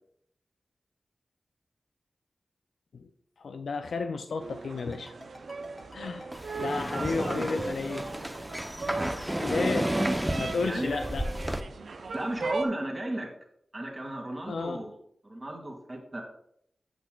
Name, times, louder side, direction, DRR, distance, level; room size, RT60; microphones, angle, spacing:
voice 1, 3.4-5.1 5.9-6.3 6.6-8.1 8.9-9.1 9.4-9.9 10.4-11.3 14.5-14.8, left 4 dB, 85° left, 7 dB, 0.3 m, -33 dB
sound 1, 4.4-12.7, right 3 dB, 80° right, 0.5 m, -37 dB
Ringtone, 4.8-11.5, left 1 dB, 25° left, 1.0 m, -49 dB
sound 2, 6.3-11.6, equal, 5° right, 0.6 m, -32 dB
voice 2, 7.0-7.4 10.6-11.0 12.1-13.3 13.7-14.9 15.2-16.2, right 1 dB, 40° right, 0 dB, 2.1 m, -35 dB
8.3 x 6.0 x 2.3 m, 0.72 s
cardioid pair, 50°, 0 cm